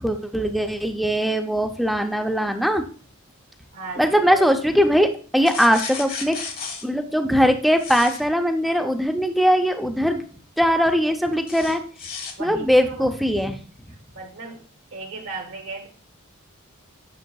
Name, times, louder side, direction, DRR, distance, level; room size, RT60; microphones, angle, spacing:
voice 1, 0.0-2.8 4.0-6.4 6.8-10.2 10.6-11.8 12.4-13.6, equal, ahead, 5 dB, 0.6 m, -20 dB
voice 2, 3.7-4.6 12.4-13.1 13.9-14.7 14.9-15.9, right 3 dB, 65° right, 2 dB, 1.6 m, -36 dB
sound 1, 5.5-6.9 7.8-8.2 11.5-12.3, left 5 dB, 45° left, 1.3 m, -33 dB
9.1 x 6.4 x 2.3 m, 0.41 s
head